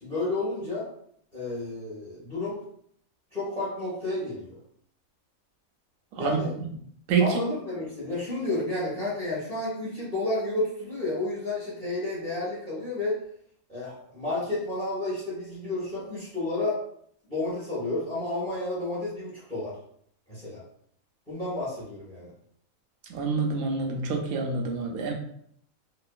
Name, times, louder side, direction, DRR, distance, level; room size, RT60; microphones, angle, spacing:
voice 1, 0.0-0.9 1.3-2.6 3.3-4.5 6.2-6.5 7.2-13.2 13.7-16.8 17.3-19.7 20.3-20.6 21.3-22.3, left 2 dB, 5° left, -10 dB, 1.0 m, -31 dB
voice 2, 7.1-7.4 23.1-25.1, right 5 dB, 75° right, 1 dB, 1.0 m, -26 dB
2.8 x 2.3 x 2.3 m, 0.66 s
omnidirectional pair, 1.5 m